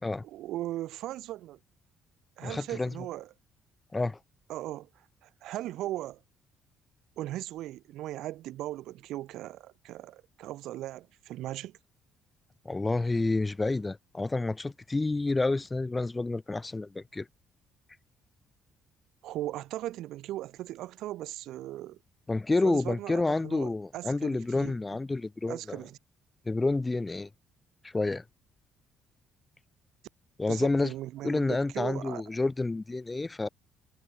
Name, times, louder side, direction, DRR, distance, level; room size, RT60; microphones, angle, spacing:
voice 1, 0.2-1.6 2.4-3.3 4.5-6.2 7.2-11.8 19.2-22.0 22.6-24.8 25.5-26.0 30.5-32.2, right 14 dB, 75° right, 0.4 m, -38 dB
voice 2, 2.4-2.9 3.9-4.2 12.7-17.3 22.3-25.8 26.5-27.3 27.9-28.2 30.4-30.9 31.2-33.5, left 3 dB, 20° left, 0.3 m, -29 dB
supercardioid pair, 65°, 0 cm